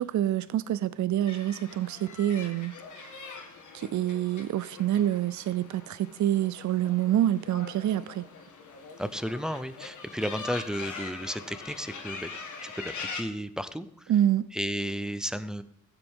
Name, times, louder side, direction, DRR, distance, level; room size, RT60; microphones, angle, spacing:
voice 1, 0.0-3.2 3.7-8.2 14.1-14.4, right 12 dB, 70° right, 0.4 m, -27 dB
sound 1, 1.3-13.2, left 4 dB, 75° left, 1.7 m, -43 dB
voice 2, 9.0-12.3 12.6-14.1 14.5-15.6, equal, ahead, 0.6 m, -33 dB
14.5 x 8.1 x 3.6 m
cardioid pair, 95°, 30 cm